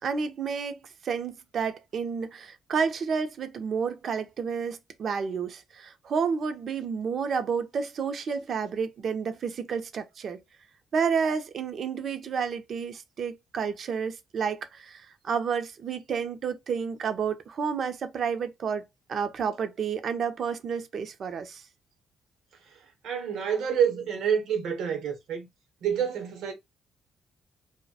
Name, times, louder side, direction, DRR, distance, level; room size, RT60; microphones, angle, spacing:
voice 1, 0.0-10.4 10.9-21.6, right 6 dB, 55° right, 0.4 m, -30 dB
voice 2, 22.6-25.5 25.8-26.5, right 7 dB, 80° right, 0.8 m, -28 dB
2.2 x 2.1 x 2.6 m
cardioid pair, 90°, 0 cm